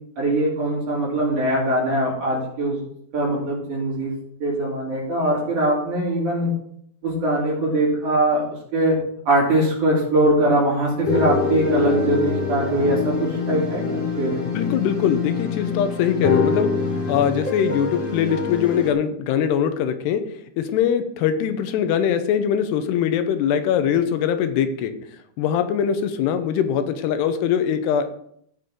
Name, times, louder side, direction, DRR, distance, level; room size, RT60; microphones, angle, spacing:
voice 1, 0.2-2.8 3.1-4.1 4.4-6.5 7.0-9.0 9.3-13.1 13.5-14.5, right 1 dB, 50° right, -6 dB, 4.1 m, -21 dB
sound 1, 11.0-18.9, left 4 dB, 30° left, 1.5 m, -25 dB
voice 2, 14.4-16.7 17.1-20.2 20.6-25.0 25.4-28.1, left 8 dB, 85° left, 9 dB, 2.8 m, -22 dB
16.0 x 5.9 x 3.7 m, 0.69 s
omnidirectional pair, 4.8 m